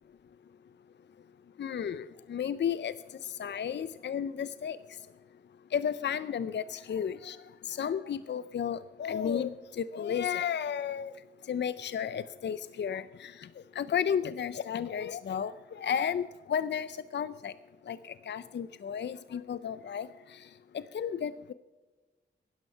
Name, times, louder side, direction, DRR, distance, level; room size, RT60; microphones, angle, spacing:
voice 1, 1.6-2.9 3.4-4.8 5.7-7.4 7.7-11.1 11.5-13.3 13.8-17.5 17.9-18.0 18.3-20.1 20.9-21.5, left 8 dB, 65° left, 15 dB, 0.5 m, -33 dB
12.0 x 11.0 x 5.5 m, 1.2 s
wide cardioid pair, 95°, 20 cm